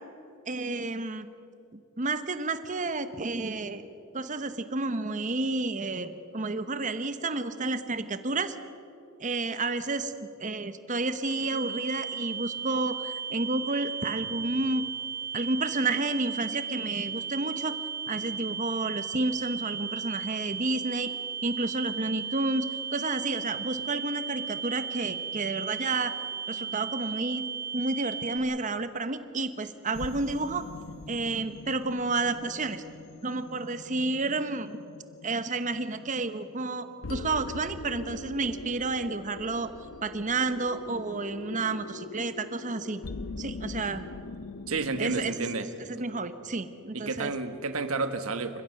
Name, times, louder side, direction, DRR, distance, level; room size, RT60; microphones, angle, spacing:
voice 1, 0.5-1.3 1.7-3.8 4.1-8.6 9.2-14.8 15.3-17.8 18.1-21.1 21.4-22.7 22.9-26.2 26.5-27.4 27.7-30.7 31.1-32.8 33.2-34.8 35.2-39.7 40.0-43.0 43.4-44.1 45.0-45.3 45.9-47.3, right 3 dB, 35° right, 11 dB, 1.0 m, -30 dB
sound 1, 11.2-28.4, right 7 dB, 50° left, 2.3 m, -36 dB
sound 2, 29.9-45.3, left 3 dB, 85° left, 0.8 m, -43 dB
voice 2, 44.7-45.7 46.9-48.6, right 3 dB, 85° right, 10 dB, 1.4 m, -30 dB
29.0 x 15.5 x 6.6 m, 2.7 s
head